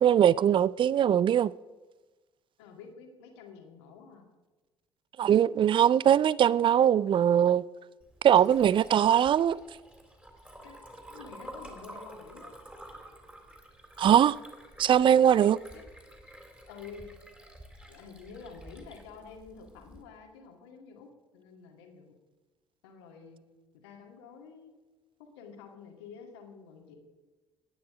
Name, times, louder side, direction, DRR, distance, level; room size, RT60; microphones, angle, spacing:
voice 1, 0.0-1.5 5.2-7.6 8.2-9.6 14.0-14.4 14.8-15.6, right 9 dB, 40° right, 0.5 m, -21 dB
voice 2, 2.6-4.2 10.6-10.8 11.1-12.6 15.4-15.9 16.7-17.0 17.9-22.1 22.8-23.5 23.8-24.7 25.2-27.0, left 5 dB, 70° left, 2.4 m, -49 dB
Liquid, 8.0-20.0, right 1 dB, 10° right, 3.4 m, -50 dB
17.5 x 9.5 x 5.1 m
figure-of-eight pair, 55°, 13 cm